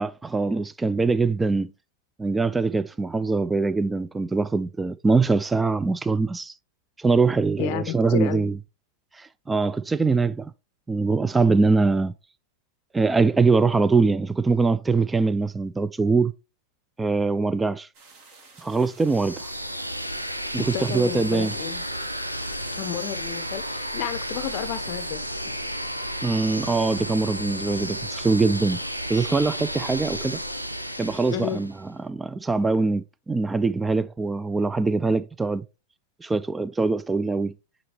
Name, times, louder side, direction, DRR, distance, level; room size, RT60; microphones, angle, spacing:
voice 1, 0.0-1.7 2.2-6.5 7.0-8.5 9.2-10.5 10.9-12.1 12.9-16.3 17.0-17.9 18.6-19.5 20.5-21.5 26.2-28.8 29.1-30.4 31.0-31.7 32.0-35.6 36.2-37.5, right 3 dB, 10° right, 0.3 m, -23 dB
voice 2, 7.6-8.5 20.6-21.8 22.8-25.6 31.3-31.6, left 11 dB, 45° left, 0.6 m, -32 dB
sound 1, 17.9-25.1, right 4 dB, 45° right, 1.8 m, -50 dB
sound 2, 19.0-31.8, equal, 90° right, 0.6 m, -32 dB
8.5 x 4.0 x 3.1 m
figure-of-eight pair, 90°, 0 cm